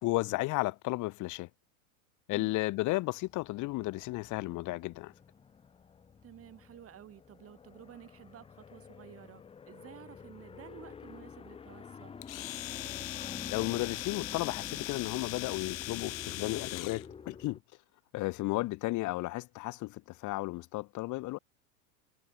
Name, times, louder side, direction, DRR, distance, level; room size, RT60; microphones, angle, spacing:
voice 1, 0.0-1.5 2.3-5.1 13.5-17.6 18.1-21.4, left 20 dB, 45° left, 1.7 m, -33 dB
sound 1, 3.2-17.6, left 6 dB, 15° left, 0.8 m, -48 dB
voice 2, 6.2-12.2, right 10 dB, 35° right, 6.1 m, -52 dB
Domestic sounds home sounds, 12.2-17.1, left 18 dB, 70° left, 1.8 m, -40 dB
hypercardioid pair, 115°, 42 cm